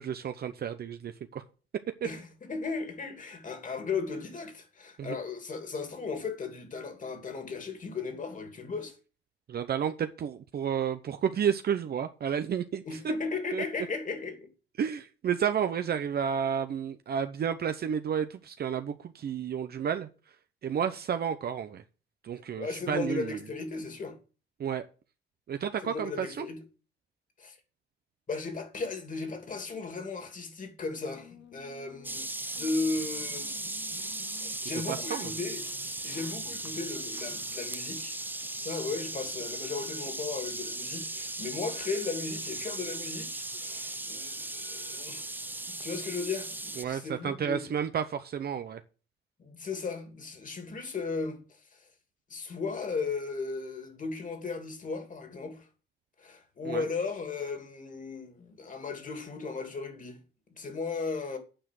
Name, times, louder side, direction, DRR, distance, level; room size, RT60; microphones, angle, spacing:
voice 1, 0.0-1.4 5.0-5.2 9.5-12.8 13.5-13.6 14.8-20.1 20.6-21.8 22.2-23.4 24.6-24.9 25.5-26.5 34.9-35.3 46.8-48.8 56.6-56.8, right 8 dB, 55° right, 0.8 m, -31 dB
voice 2, 2.0-8.9 12.8-14.5 22.5-24.2 25.8-26.6 27.4-27.6 28.3-33.5 34.0-35.6 36.0-38.2 38.6-45.3 45.7-47.7 49.4-51.9 52.3-55.7 56.2-60.2 60.5-61.4, left 4 dB, 40° left, 2.8 m, -36 dB
sound 1, 31.1-46.0, left 7 dB, 65° left, 1.9 m, -57 dB
sound 2, 32.0-46.8, right 2 dB, 10° right, 0.7 m, -37 dB
8.8 x 5.0 x 7.6 m
cardioid pair, 90°, 20 cm